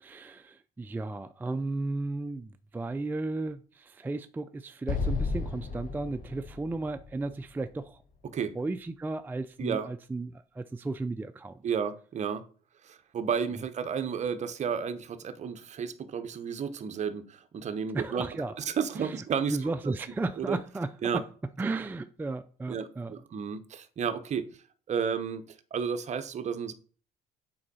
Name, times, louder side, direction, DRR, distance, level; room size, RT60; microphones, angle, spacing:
voice 1, 0.0-8.0 8.6-11.6 17.9-18.6 19.0-19.2 19.5-21.2 21.6-23.1, right 3 dB, 10° right, 0.3 m, -34 dB
Explosion, 4.9-8.2, left 4 dB, 55° left, 1.2 m, -34 dB
voice 2, 11.6-12.4 12.8-18.3 18.6-19.6 19.8-19.9 20.4-20.6 21.0-21.2 22.7-24.5 24.9-26.7, right 7 dB, 45° right, 0.9 m, -32 dB
7.7 x 4.5 x 4.2 m
cardioid pair, 110°, 17 cm